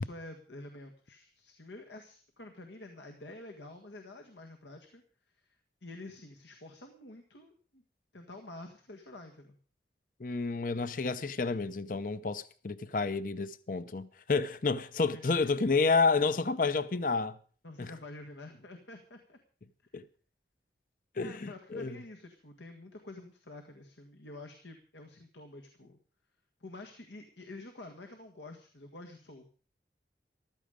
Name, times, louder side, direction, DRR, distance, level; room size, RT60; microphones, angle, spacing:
voice 1, 0.0-5.0 5.4-7.8 8.1-9.6 15.1-15.7 17.6-19.4 21.2-26.0 26.6-29.5, left 2 dB, 85° left, 1.7 m, -48 dB
voice 2, 10.2-17.4 17.8-17.9 19.9-20.0 21.2-22.0, left 4 dB, 50° left, 0.6 m, -30 dB
14.5 x 13.0 x 5.1 m
head